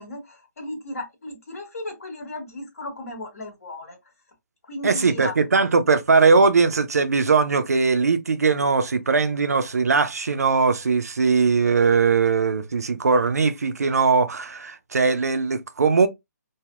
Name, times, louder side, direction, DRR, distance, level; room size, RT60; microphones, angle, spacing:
voice 1, 0.0-4.0 4.7-5.3, left 2 dB, 50° left, 1.4 m, -35 dB
voice 2, 4.8-16.1, right 4 dB, 60° right, 0.4 m, -20 dB
3.4 x 2.1 x 2.3 m
figure-of-eight pair, 140°, 10 cm